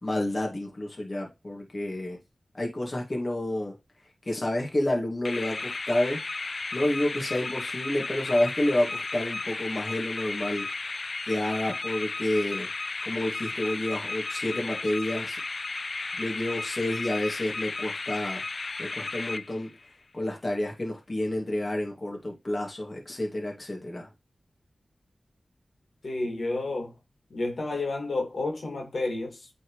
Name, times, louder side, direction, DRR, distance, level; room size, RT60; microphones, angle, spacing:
voice 1, 0.0-2.2 2.5-3.7 4.2-6.2 6.7-10.7 10.9-12.7 13.0-15.4 16.2-18.4 18.8-24.1, left 1 dB, 35° left, 2.5 m, -29 dB
sound 1, 5.2-19.9, left 3 dB, 50° left, 0.4 m, -34 dB
voice 2, 26.0-27.0 27.3-29.5, left 2 dB, 65° left, 2.8 m, -30 dB
8.9 x 4.5 x 3.3 m
wide cardioid pair, 75°, 0 cm